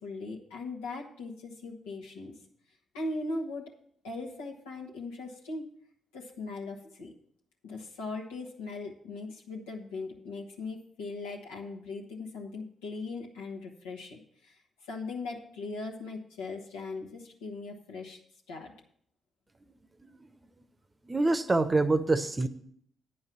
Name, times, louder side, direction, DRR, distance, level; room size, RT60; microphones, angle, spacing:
voice 1, 0.0-2.3 2.9-3.7 4.0-5.7 6.1-7.1 7.6-18.2 18.5-18.7, left 3 dB, 80° left, 0 dB, 1.2 m, -39 dB
voice 2, 21.1-22.5, right 2 dB, 30° right, 12 dB, 0.8 m, -25 dB
9.5 x 5.5 x 7.3 m, 0.67 s
hypercardioid pair, 40°, 0 cm